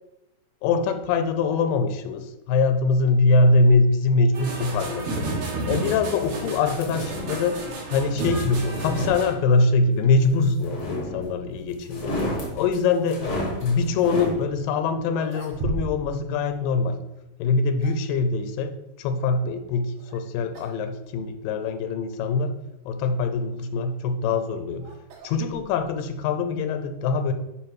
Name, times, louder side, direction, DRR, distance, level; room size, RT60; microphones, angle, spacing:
voice 1, 0.6-5.3 5.7-7.6 7.9-12.2 12.6-13.3 13.6-17.0 17.4-18.7 19.0-22.5 22.9-24.9 25.2-27.3, left 3 dB, 85° left, 8 dB, 2.3 m, -23 dB
sound 1, 4.3-9.3, right 2 dB, 55° right, 1.9 m, -31 dB
sound 2, 6.8-7.5 8.4-9.7 10.6-11.5 11.8-14.4, left 1 dB, 50° left, 1.1 m, -31 dB
sound 3, 15.1-16.2 16.4-16.6 17.4-18.2 20.0-20.2 20.5-20.8 21.1-21.2 22.0-22.1 23.9-26.0, right 3 dB, 85° right, 2.8 m, -36 dB
9.1 x 3.5 x 4.7 m, 0.91 s
omnidirectional pair, 3.9 m